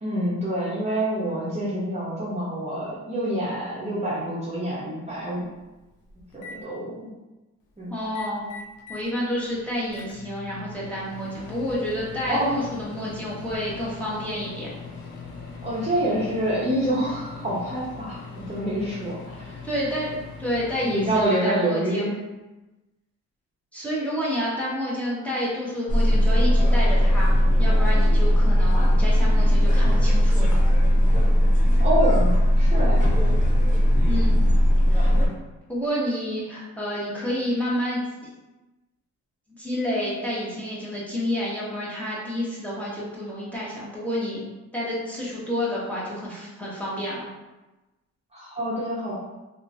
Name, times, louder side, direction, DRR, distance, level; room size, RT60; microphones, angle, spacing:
voice 1, 0.0-5.5 6.3-7.1 7.8-7.9 12.3-12.6 15.6-19.6 20.8-22.2 31.8-33.1 48.3-49.1, right 1 dB, 20° right, -8 dB, 0.8 m, -27 dB
Microwave oven, 5.0-5.1 5.6-6.6 8.0-9.1 9.5-21.3, left 4 dB, 85° left, 0.5 m, -41 dB
voice 2, 7.9-8.4 8.9-14.7 19.6-20.1 20.4-22.1 23.7-30.6 34.1-34.4 34.9-35.2 35.7-38.3 39.6-44.4 44.7-47.2, equal, 5° left, -8 dB, 1.0 m, -29 dB
sound 1, 25.9-35.3, equal, 25° left, 0.7 m, -18 dB
2.7 x 2.5 x 2.6 m, 1.1 s
cardioid pair, 90°, 30 cm